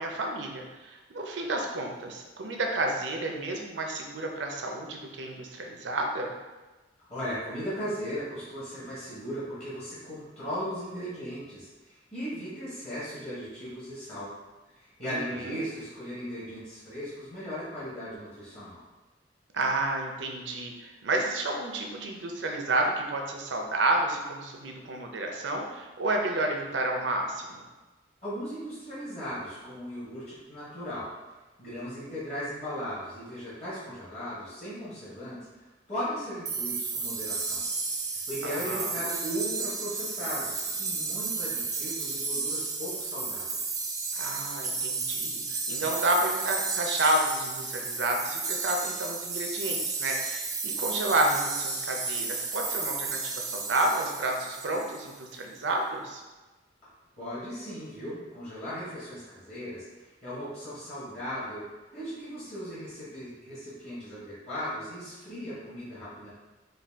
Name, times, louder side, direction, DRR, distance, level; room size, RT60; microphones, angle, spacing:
voice 1, 0.0-6.3 15.0-15.6 19.5-27.6 38.4-39.0 44.1-56.2, right 2 dB, 80° right, 2 dB, 0.6 m, -30 dB
voice 2, 7.1-14.3 14.8-18.8 28.2-31.1 31.6-35.4 35.9-37.6 38.1-43.5 57.2-59.9 60.2-61.6 61.9-66.3, equal, 35° left, -9 dB, 1.3 m, -37 dB
sound 1, 36.4-55.1, right 4 dB, 20° right, 0.3 m, -33 dB
4.0 x 2.3 x 3.4 m, 1.2 s
head